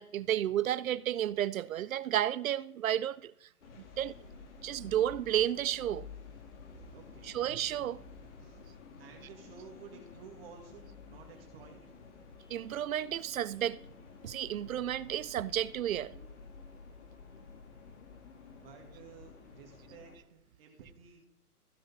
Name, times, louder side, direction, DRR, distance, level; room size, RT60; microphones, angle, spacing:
voice 1, 0.0-3.3 4.0-4.1 4.6-6.1 7.2-8.0 12.5-13.8 14.2-16.2, right 11 dB, 65° right, 0.5 m, -32 dB
sound 1, 3.6-20.2, left 5 dB, 50° left, 2.0 m, -52 dB
voice 2, 6.9-7.4 8.4-8.6 9.0-11.9 18.6-21.3, right 6 dB, 40° right, 1.8 m, -53 dB
15.0 x 5.0 x 4.1 m
hypercardioid pair, 150°, 46 cm